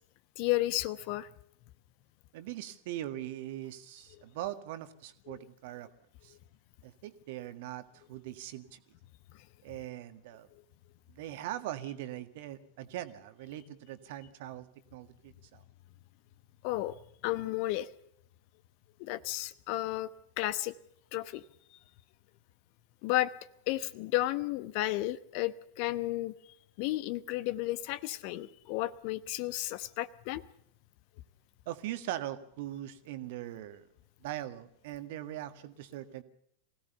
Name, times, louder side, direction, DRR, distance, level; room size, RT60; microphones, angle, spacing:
voice 1, 0.4-1.3 5.3-5.4 16.6-17.0 17.2-17.9 19.0-20.1 20.4-20.7 21.1-21.4 23.0-23.3 23.7-26.3 26.8-30.4, left 16 dB, 45° left, 17 dB, 1.0 m, -32 dB
voice 2, 2.3-5.9 6.2-6.3 6.8-8.8 9.6-10.5 11.1-15.6 31.7-33.8 34.2-36.2, right 13 dB, 50° right, 11 dB, 1.8 m, -41 dB
23.5 x 17.5 x 6.9 m, 0.72 s
figure-of-eight pair, 90°, 0 cm